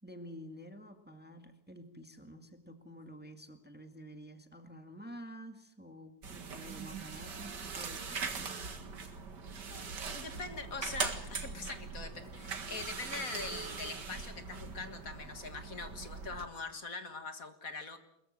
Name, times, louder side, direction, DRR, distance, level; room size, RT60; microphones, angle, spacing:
voice 1, 0.0-8.7, equal, 5° right, 6 dB, 1.7 m, -50 dB
sound 1, 6.2-16.4, right 5 dB, 85° right, 2.5 m, -41 dB
voice 2, 10.1-18.0, left 4 dB, 55° left, 8 dB, 2.1 m, -43 dB
22.5 x 22.0 x 7.5 m, 0.82 s
omnidirectional pair, 1.8 m